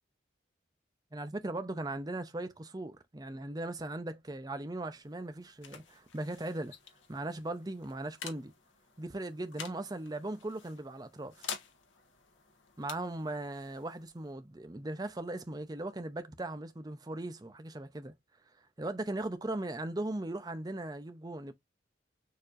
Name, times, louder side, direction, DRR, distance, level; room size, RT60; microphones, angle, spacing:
voice 1, 1.1-6.7 7.1-8.5 9.0-11.5 12.8-18.1 18.8-21.5, right 2 dB, 20° right, 0.5 m, -38 dB
sound 1, 4.8-16.2, left 7 dB, 80° left, 1.3 m, -50 dB
6.6 x 2.8 x 2.5 m
head